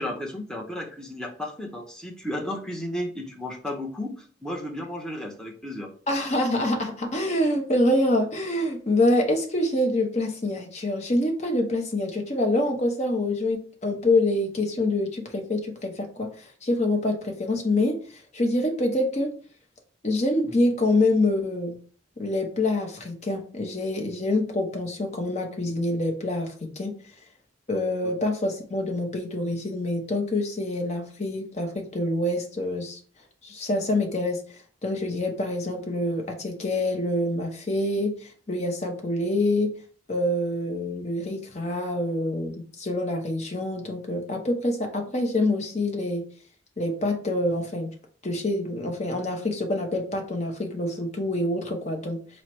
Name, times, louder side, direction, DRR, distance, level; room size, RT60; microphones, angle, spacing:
voice 1, 0.0-5.9 28.0-28.1, left 1 dB, 5° left, 0 dB, 0.7 m, -33 dB
voice 2, 6.1-19.4 20.0-21.8 22.2-26.9 27.7-33.0 33.4-34.4 34.8-39.8 40.1-46.2 46.8-47.9 48.2-52.2, left 1 dB, 35° left, 3 dB, 0.8 m, -26 dB
4.4 x 2.1 x 4.4 m, 0.41 s
head